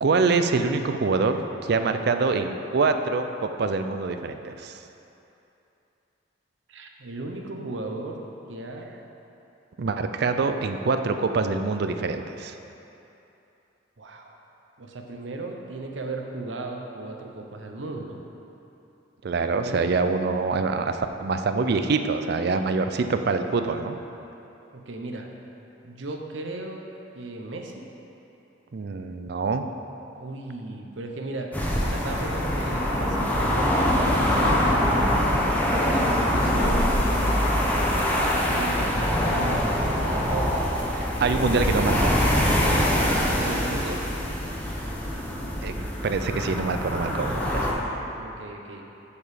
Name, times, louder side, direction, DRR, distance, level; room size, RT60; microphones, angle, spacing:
voice 1, 0.0-4.8 9.8-12.6 19.2-24.0 28.7-29.6 40.9-42.1 45.6-47.7, right 4 dB, 55° right, 7 dB, 0.4 m, -25 dB
voice 2, 6.7-8.9 14.0-14.4 14.8-18.2 19.5-19.9 24.7-25.3 25.8-26.9 27.1-27.8 30.2-31.5 31.8-34.6 35.8-37.0 38.4-40.8 43.4-44.0 48.2-48.8, right 2 dB, 75° right, 2 dB, 0.8 m, -36 dB
sound 1, 31.5-47.7, equal, 10° left, 0.9 m, -24 dB
6.9 x 6.9 x 5.0 m, 2.9 s
head